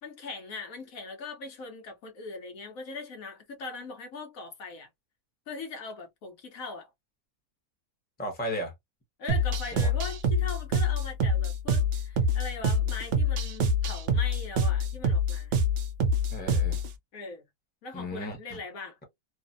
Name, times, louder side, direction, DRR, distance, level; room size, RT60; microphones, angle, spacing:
voice 1, 0.0-4.9 5.5-6.9 9.2-15.5 17.1-17.4 17.8-19.0, left 4 dB, 70° left, 1.2 m, -40 dB
voice 2, 8.2-8.7 9.7-9.9 16.3-16.8 17.9-18.6, left 1 dB, 10° left, 0.8 m, -35 dB
sound 1, 9.3-16.9, left 1 dB, 60° right, 0.6 m, -26 dB
3.1 x 2.0 x 2.5 m
omnidirectional pair, 1.6 m